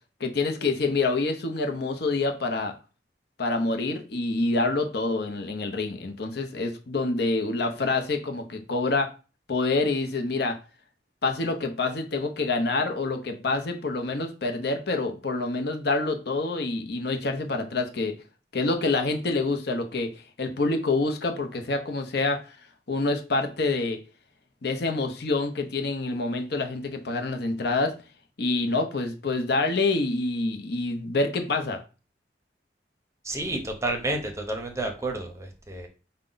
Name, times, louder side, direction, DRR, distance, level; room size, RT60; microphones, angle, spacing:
voice 1, 0.2-2.7 3.4-9.1 9.5-10.6 11.2-18.2 18.5-22.5 22.9-24.0 24.6-27.9 28.4-31.8, left 3 dB, 65° left, 5 dB, 0.8 m, -27 dB
voice 2, 33.2-35.9, right 2 dB, 15° right, 3 dB, 0.7 m, -30 dB
4.9 x 2.2 x 3.8 m, 0.33 s
head